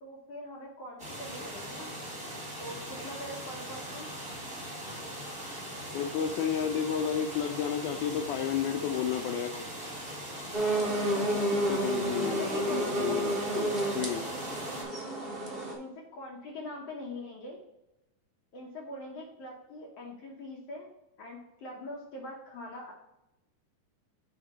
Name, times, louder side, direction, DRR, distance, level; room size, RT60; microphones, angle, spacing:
voice 1, 0.0-1.9 2.6-4.1 11.1-11.7 12.2-13.2 15.7-17.6 18.5-22.9, left 1 dB, 65° left, -1 dB, 1.7 m, -43 dB
sound 1, 1.0-14.8, equal, 15° right, 1.1 m, -40 dB
voice 2, 5.9-9.9 11.6-13.3 13.6-14.3, left 8 dB, 80° left, 6 dB, 1.9 m, -32 dB
sound 2, 10.5-15.7, right 1 dB, 60° right, 0.6 m, -30 dB
8.2 x 2.8 x 6.1 m, 0.89 s
omnidirectional pair, 3.8 m